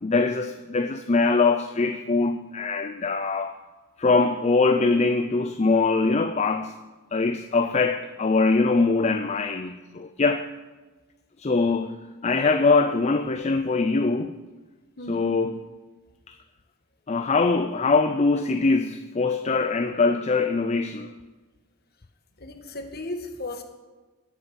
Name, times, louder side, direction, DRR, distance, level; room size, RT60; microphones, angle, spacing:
voice 1, 0.0-3.6 4.0-6.7 7.1-10.5 11.4-14.4 15.1-15.6 16.3-16.4 17.1-21.1, left 3 dB, 30° left, 0.5 m, -23 dB
voice 2, 15.0-15.3 22.4-23.6, left 2 dB, 45° left, 1.6 m, -35 dB
11.0 x 9.7 x 8.0 m
head